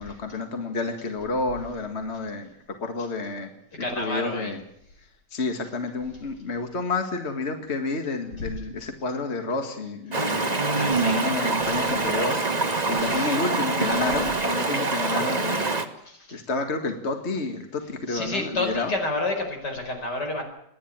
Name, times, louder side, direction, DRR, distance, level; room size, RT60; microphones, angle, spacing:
voice 1, 0.0-2.5 2.8-3.5 4.0-4.6 5.3-10.6 11.0-12.4 12.9-15.7 16.3-18.9, left 3 dB, 40° left, 6 dB, 2.1 m, -30 dB
voice 2, 3.8-4.5 10.8-11.2 12.9-13.4 16.0-16.4 18.1-20.4, left 2 dB, 80° left, 3 dB, 5.7 m, -30 dB
Stream, 10.1-15.9, right 3 dB, 25° right, 1.5 m, -25 dB
28.0 x 11.0 x 8.9 m, 0.73 s
omnidirectional pair, 1.8 m